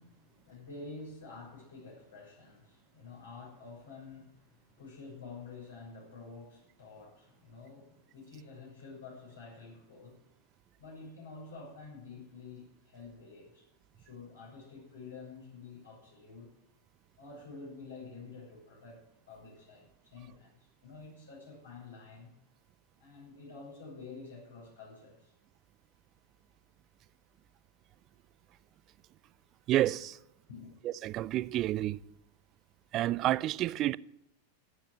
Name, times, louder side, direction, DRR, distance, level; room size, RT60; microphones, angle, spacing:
voice 1, 0.0-10.3 10.8-13.7 13.9-16.5 17.2-22.3 23.0-25.3 30.5-30.8, left 4 dB, 70° left, 6.7 m, -49 dB
voice 2, 29.7-30.2 30.8-32.0 32.9-34.0, right 14 dB, 35° right, 0.4 m, -29 dB
12.5 x 9.5 x 7.7 m
figure-of-eight pair, 90°, 0 cm